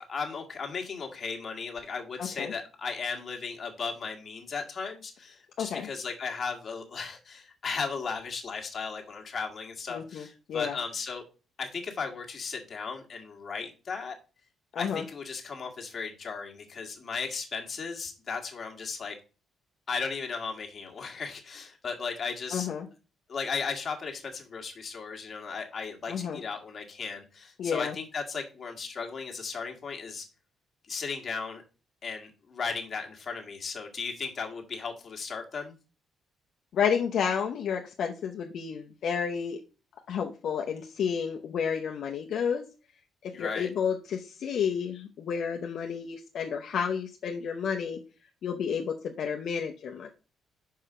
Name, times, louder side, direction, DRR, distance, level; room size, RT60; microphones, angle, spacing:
voice 1, 0.0-11.2 11.6-14.1 14.8-19.2 19.9-22.7 23.3-30.2 30.8-31.6 32.0-35.7 43.3-43.7, left 5 dB, 35° left, 1 dB, 1.7 m, -36 dB
voice 2, 2.2-2.5 5.6-5.9 9.9-10.8 14.7-15.0 22.5-22.9 26.1-26.4 27.6-27.9 36.7-39.6 40.1-42.7 43.2-48.0 48.4-50.1, left 7 dB, 60° left, 2 dB, 0.7 m, -31 dB
5.6 x 4.9 x 4.9 m, 0.33 s
cardioid pair, 130°, 0 cm